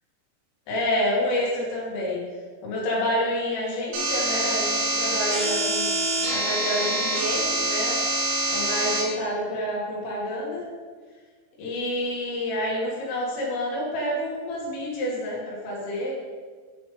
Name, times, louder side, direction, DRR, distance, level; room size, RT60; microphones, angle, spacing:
voice 1, 0.7-2.2 2.6-5.9 6.3-8.0 8.5-10.6 11.6-16.1, left 1 dB, 80° left, -4 dB, 4.8 m, -28 dB
sound 1, 3.9-9.0, right 1 dB, 75° right, 5.0 m, -25 dB
11.5 x 7.2 x 3.5 m, 1.5 s
omnidirectional pair, 5.7 m